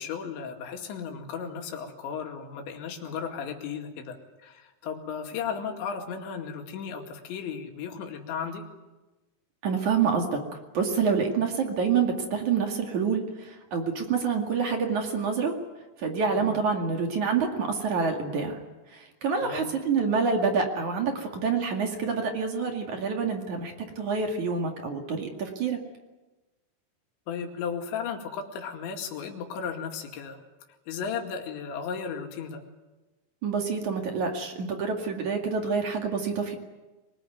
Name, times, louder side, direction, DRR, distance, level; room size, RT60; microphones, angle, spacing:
voice 1, 0.0-8.7 16.4-16.6 19.4-19.7 27.3-30.4 30.9-32.6, left 6 dB, 65° left, 4 dB, 4.4 m, -35 dB
voice 2, 9.6-10.4 10.7-15.5 16.0-18.6 19.2-25.8 33.4-36.6, right 5 dB, 45° right, 3 dB, 2.9 m, -27 dB
24.5 x 19.5 x 9.4 m, 1.1 s
omnidirectional pair, 5.7 m